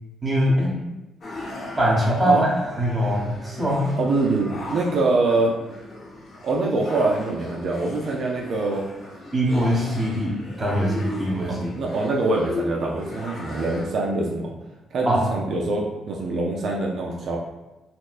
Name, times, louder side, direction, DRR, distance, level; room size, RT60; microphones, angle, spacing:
voice 1, 0.2-0.7 1.8-2.5 2.8-3.9 9.3-11.7 15.0-15.3, equal, 25° right, -4 dB, 1.2 m, -22 dB
sound 1, 1.2-13.9, left 2 dB, 50° left, 1.0 m, -37 dB
voice 2, 4.0-5.6 6.4-8.8 10.0-10.2 11.5-14.5 14.9-17.4, right 2 dB, 60° right, -1 dB, 0.5 m, -24 dB
4.2 x 2.1 x 2.4 m, 1.0 s
cardioid pair, 90°, 0 cm